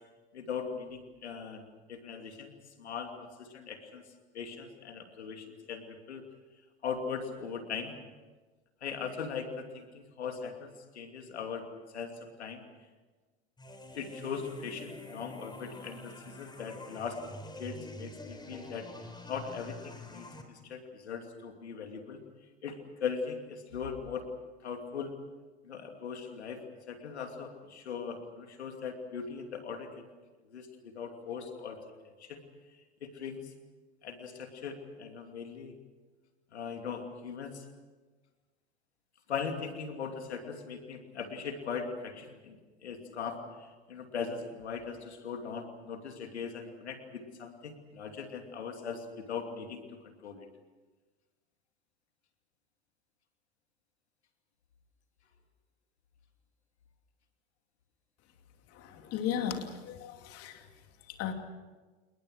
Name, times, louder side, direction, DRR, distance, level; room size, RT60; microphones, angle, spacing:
voice 1, 0.3-1.6 1.9-2.5 2.8-4.0 4.3-6.2 6.8-7.9 8.8-11.7 11.9-12.6 13.9-17.2 17.6-18.9 19.3-22.2 22.6-24.3 24.6-25.1 25.6-26.6 26.9-30.0 30.5-31.8 32.2-32.4 33.0-33.5 34.0-35.8 36.5-37.6 39.3-43.4 43.9-50.5, left 6 dB, 80° left, 5 dB, 2.8 m, -39 dB
sound 1, 13.6-20.4, left 1 dB, 15° left, 4.0 m, -47 dB
voice 2, 58.7-60.7 61.2-61.3, left 9 dB, 45° left, 5 dB, 2.8 m, -35 dB
29.0 x 20.5 x 6.5 m, 1.3 s
hypercardioid pair, 90°, 33 cm